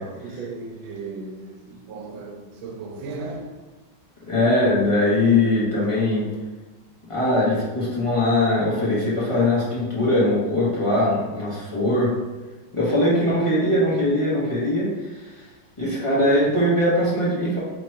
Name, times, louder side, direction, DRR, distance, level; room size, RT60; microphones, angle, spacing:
voice 1, 0.0-3.6, right 3 dB, 85° right, 3 dB, 1.4 m, -36 dB
voice 2, 4.3-6.3 7.1-12.1 12.7-14.9 15.8-17.6, left 1 dB, 20° left, -8 dB, 1.0 m, -21 dB
3.5 x 3.0 x 4.4 m, 1.2 s
omnidirectional pair, 2.1 m